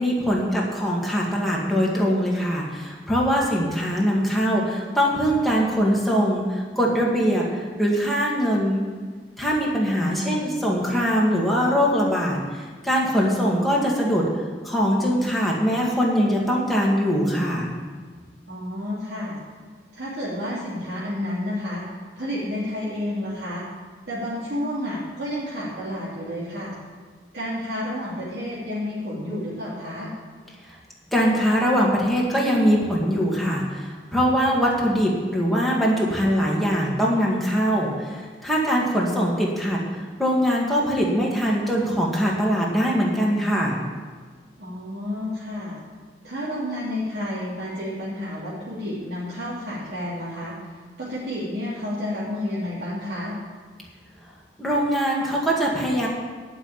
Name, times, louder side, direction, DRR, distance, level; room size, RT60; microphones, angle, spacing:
voice 1, 0.0-8.8 9.4-14.3 14.6-17.7 31.1-39.8 40.2-43.8 54.6-56.1, equal, ahead, -4 dB, 2.2 m, -22 dB
voice 2, 9.9-10.4 18.5-19.4 19.9-21.8 22.2-23.6 24.1-26.7 27.3-30.1 44.6-45.8 46.2-50.5 51.0-53.3, left 1 dB, 70° right, -10 dB, 3.0 m, -30 dB
11.0 x 5.9 x 8.8 m, 1.5 s
head